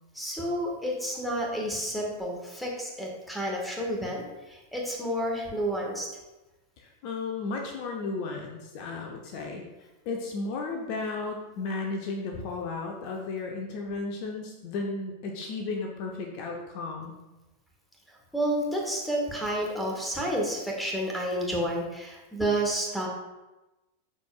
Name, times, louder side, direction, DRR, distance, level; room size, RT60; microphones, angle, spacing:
voice 1, 0.1-6.1 18.1-23.1, right 1 dB, 5° left, -1 dB, 1.5 m, -30 dB
voice 2, 6.8-9.6 10.0-17.1, left 3 dB, 45° left, 1 dB, 0.8 m, -34 dB
11.5 x 4.3 x 2.4 m, 1.1 s
figure-of-eight pair, 90°, 0 cm